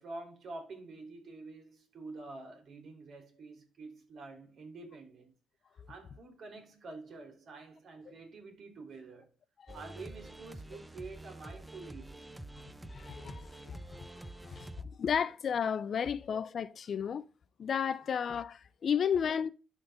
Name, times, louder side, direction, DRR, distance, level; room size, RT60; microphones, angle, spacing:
voice 1, 0.0-5.3 5.9-9.3 9.7-12.2 14.3-14.5, right 3 dB, 55° right, 3.6 m, -48 dB
sound 1, 9.7-14.8, right 1 dB, 10° right, 0.7 m, -48 dB
voice 2, 12.9-13.8 14.4-14.7 15.0-17.2 17.6-19.5, left 7 dB, 55° left, 0.5 m, -32 dB
11.5 x 4.0 x 3.9 m
cardioid pair, 90°, 0 cm